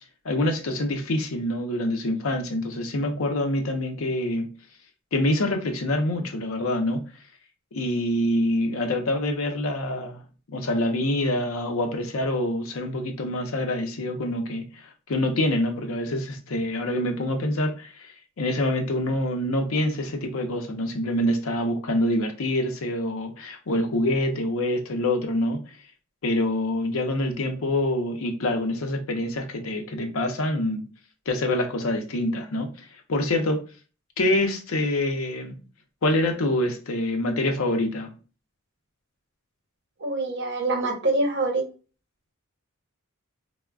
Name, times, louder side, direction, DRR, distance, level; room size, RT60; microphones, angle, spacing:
voice 1, 0.2-4.5 5.1-7.1 7.7-10.2 10.5-25.6 26.2-30.8 31.3-33.6 34.2-35.6 36.0-38.1, left 1 dB, 70° left, 0.6 m, -26 dB
voice 2, 40.0-41.6, right 2 dB, 55° right, 0.8 m, -25 dB
3.5 x 2.1 x 2.3 m
head